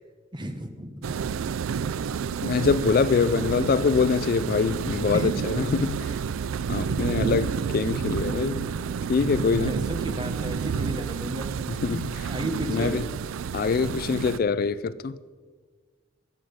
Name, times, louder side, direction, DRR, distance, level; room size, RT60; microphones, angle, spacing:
voice 1, 0.3-1.1 1.6-1.8 5.1-5.3 6.9-7.1 9.7-11.5 11.9-12.9, equal, 25° right, 1.1 m, -34 dB
sound 1, 1.0-14.4, right 6 dB, 85° right, 0.4 m, -30 dB
voice 2, 2.4-6.1 6.7-8.7 9.1-9.8 11.7-12.3 12.7-13.1 13.5-15.2, left 5 dB, 45° left, 0.3 m, -24 dB
sound 2, 4.7-10.6, equal, 5° right, 1.6 m, -49 dB
21.0 x 7.7 x 5.1 m
head